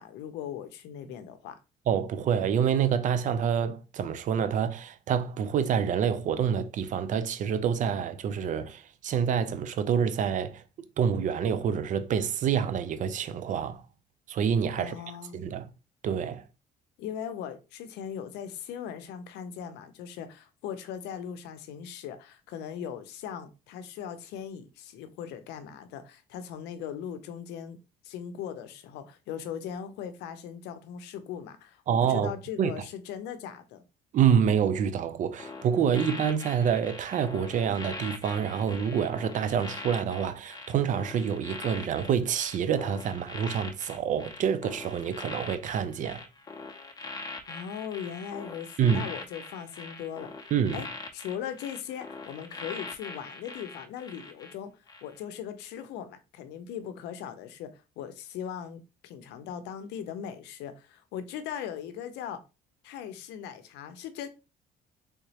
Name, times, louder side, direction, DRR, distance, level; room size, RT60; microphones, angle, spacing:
voice 1, 0.0-1.6 14.8-15.4 17.0-27.8 28.0-33.8 47.5-50.3 50.7-50.9 51.1-54.7 55.0-62.4 62.8-64.3, left 9 dB, 85° left, 0.6 m, -39 dB
voice 2, 1.9-10.6 11.0-13.8 14.3-14.9 15.3-15.7 16.0-16.4 31.9-32.3 32.6-32.7 34.1-46.2 48.8-49.1 50.5-50.8, right 8 dB, 50° right, 0.5 m, -27 dB
sound 1, 35.4-54.5 54.9-55.2, left 3 dB, 25° left, 0.6 m, -42 dB
3.5 x 3.0 x 2.8 m
cardioid pair, 110°, 17 cm